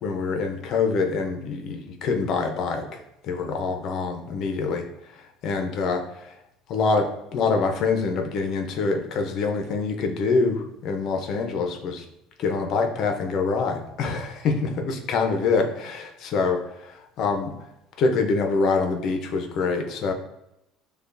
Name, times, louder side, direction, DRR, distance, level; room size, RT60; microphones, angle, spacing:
voice 1, 0.0-2.9 3.2-4.8 5.4-6.3 6.7-12.0 12.4-17.5 18.0-20.1, left 4 dB, 60° left, 4 dB, 0.7 m, -25 dB
6.7 x 2.4 x 2.6 m, 0.85 s
supercardioid pair, 95°, 0 cm